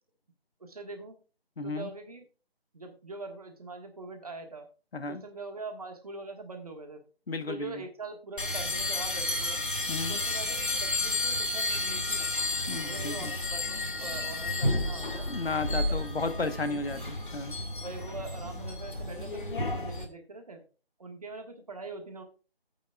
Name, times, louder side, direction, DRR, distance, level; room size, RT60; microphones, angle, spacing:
voice 1, 0.6-1.2 1.6-2.2 2.7-4.7 5.1-7.0 7.5-9.6 10.1-12.3 12.8-15.3 15.7-15.9 16.4-16.8 17.8-20.6 21.0-22.2, right 3 dB, 35° right, 5 dB, 1.7 m, -43 dB
voice 2, 1.6-1.9 4.9-5.2 7.3-7.9 9.9-10.2 12.7-13.3 15.2-17.6, left 3 dB, 75° left, 11 dB, 1.2 m, -34 dB
sound 1, 8.4-20.0, left 2 dB, 55° left, 2.0 m, -32 dB
14.0 x 8.6 x 2.4 m, 0.34 s
figure-of-eight pair, 170°, 31 cm